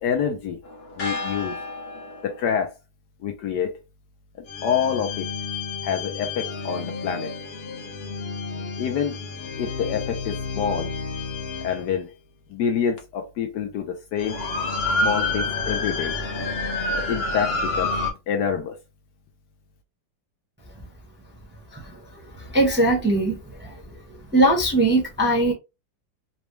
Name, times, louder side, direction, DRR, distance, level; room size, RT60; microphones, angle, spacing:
voice 1, 0.0-0.6 1.0-1.6 2.2-2.7 3.2-3.8 4.6-5.3 5.8-7.3 8.8-9.2 9.6-10.9 11.6-12.1 12.5-14.4 15.0-16.1 17.0-17.9 18.3-18.7, left 7 dB, 70° left, 1.1 m, -26 dB
sound 1, 0.6-2.5 4.5-11.9 13.0-13.1 14.2-18.1, left 3 dB, 50° left, 0.7 m, -29 dB
voice 2, 22.5-23.7 24.3-25.5, right 1 dB, 10° right, 0.7 m, -20 dB
4.1 x 2.2 x 3.1 m
omnidirectional pair, 2.1 m